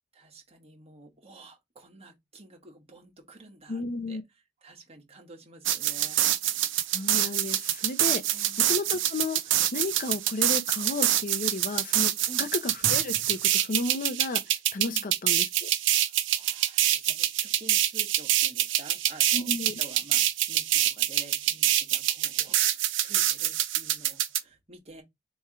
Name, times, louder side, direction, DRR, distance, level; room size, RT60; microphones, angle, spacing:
voice 1, 0.1-3.8 4.1-4.2 4.6-6.2 8.3-8.6 12.3-12.5 14.9-15.1 16.0-25.0, right 2 dB, 30° right, 1.6 m, -50 dB
voice 2, 3.7-4.2 6.9-9.4 9.7-14.4 14.7-15.7 19.3-19.8, left 3 dB, 45° left, 0.6 m, -33 dB
sound 1, 5.7-24.4, right 12 dB, 70° right, 0.6 m, -26 dB
3.5 x 3.1 x 4.6 m
head